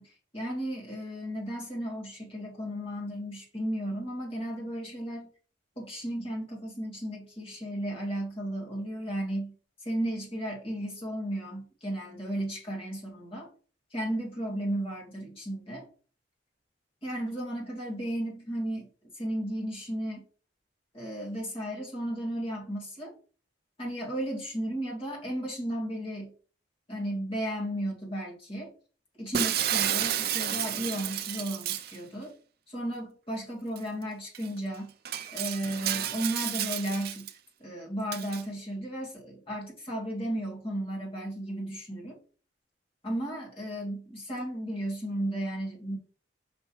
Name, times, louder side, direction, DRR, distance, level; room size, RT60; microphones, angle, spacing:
voice 1, 0.0-5.3 5.8-9.5 9.8-13.5 13.9-15.9 17.0-18.9 19.1-20.2 20.9-23.1 23.8-26.3 26.9-28.7 29.2-32.3 32.7-34.9 35.3-37.3 37.6-42.2 43.0-46.0, right 1 dB, 30° left, -4 dB, 2.2 m, -34 dB
Shatter, 29.3-32.0 33.8-33.9 34.3-34.5 35.1-37.3 38.1-38.4, right 10 dB, 55° right, 0.5 m, -31 dB
5.8 x 5.3 x 3.1 m, 0.42 s
head